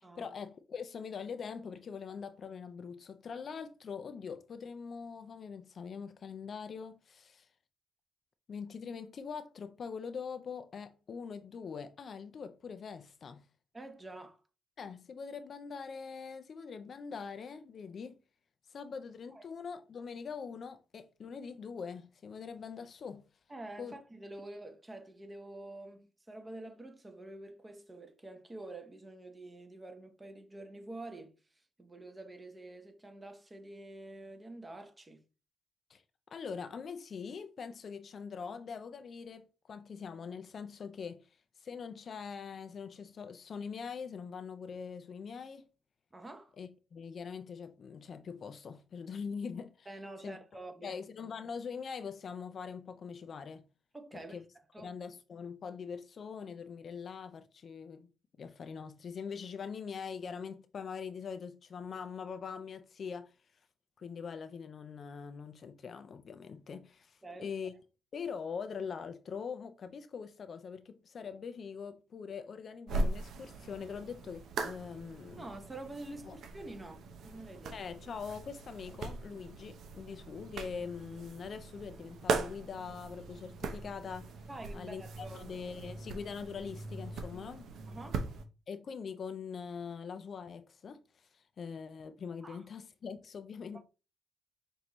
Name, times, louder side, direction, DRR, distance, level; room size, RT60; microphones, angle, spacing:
voice 1, 0.0-7.5 8.5-13.5 14.8-18.2 18.7-23.2 23.8-24.0 35.9-36.0 36.3-41.2 41.6-45.7 46.6-49.9 50.2-50.4 50.8-53.6 54.1-54.4 54.8-58.1 58.4-63.3 64.0-67.7 68.1-75.4 76.3-76.4 77.7-84.3 84.7-87.7 88.7-93.8, left 6 dB, 50° left, 0.4 m, -43 dB
voice 2, 13.7-14.4 19.3-19.5 23.5-35.2 46.1-46.5 49.9-51.0 53.9-54.4 54.7-54.9 67.2-67.5 75.4-77.8 84.5-85.5 87.9-88.3 92.4-92.6 93.7-93.8, right 2 dB, 20° right, 0.9 m, -47 dB
sound 1, 72.9-88.5, right 3 dB, 70° right, 0.7 m, -40 dB
5.9 x 2.6 x 3.0 m
cardioid pair, 90°, 0 cm